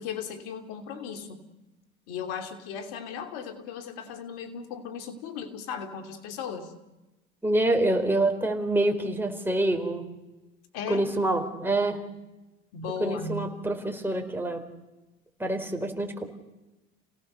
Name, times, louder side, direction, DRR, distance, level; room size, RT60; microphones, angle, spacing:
voice 1, 0.0-1.4 2.1-6.7 10.7-11.0 12.7-13.6, left 6 dB, 80° left, 7 dB, 2.9 m, -36 dB
voice 2, 7.4-10.0 10.9-12.0 13.0-14.6 15.4-16.3, right 1 dB, 5° right, 3 dB, 4.6 m, -26 dB
29.5 x 18.0 x 6.8 m, 1.0 s
hypercardioid pair, 75°, 29 cm